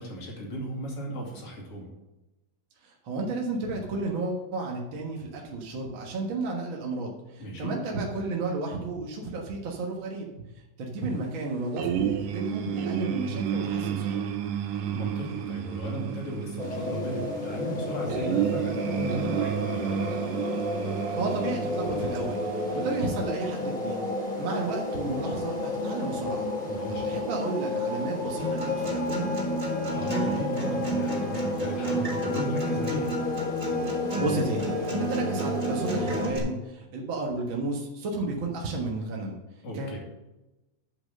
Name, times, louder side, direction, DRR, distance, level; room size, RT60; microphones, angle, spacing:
voice 1, 0.0-1.9 7.4-7.8 14.9-20.1 26.5-27.1 29.9-33.2 39.6-40.0, equal, 45° left, -1 dB, 3.2 m, -36 dB
voice 2, 2.8-10.3 10.8-14.4 21.1-24.0 24.4-26.5 26.9-29.4 34.2-39.4 39.7-40.0, right 3 dB, 50° right, -1 dB, 1.6 m, -32 dB
sound 1, 11.8-23.0, right 9 dB, 80° right, 2.5 m, -31 dB
sound 2, 16.6-36.3, left 2 dB, 15° left, 2.6 m, -32 dB
Acoustic guitar, 28.4-36.4, right 1 dB, 20° right, 2.4 m, -31 dB
10.0 x 5.9 x 6.6 m, 1.0 s
omnidirectional pair, 3.9 m